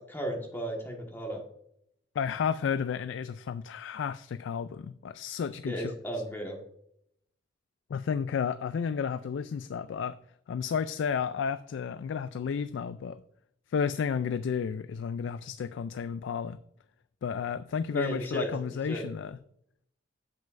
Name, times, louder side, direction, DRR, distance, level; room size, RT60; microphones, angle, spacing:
voice 1, 0.0-1.4 5.6-6.6 17.9-18.5 18.9-19.0, equal, 10° left, 1 dB, 1.4 m, -34 dB
voice 2, 2.2-5.9 7.9-10.2 10.5-13.2 13.7-16.6 17.2-19.4, left 6 dB, 80° left, 13 dB, 0.3 m, -32 dB
9.1 x 7.6 x 2.5 m, 0.72 s
head